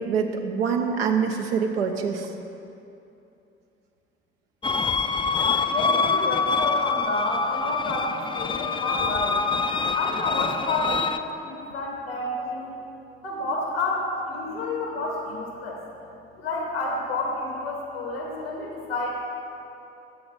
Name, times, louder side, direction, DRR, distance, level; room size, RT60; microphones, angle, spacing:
voice 1, 0.0-2.3, right 6 dB, 80° right, 3 dB, 0.8 m, -25 dB
sound 1, 4.6-11.2, left 4 dB, 15° left, 0.5 m, -25 dB
voice 2, 5.7-9.5 9.9-12.7 13.2-15.8 16.4-19.2, left 2 dB, 85° left, -1 dB, 1.8 m, -29 dB
10.5 x 7.9 x 5.3 m, 2.8 s
figure-of-eight pair, 45°, 29 cm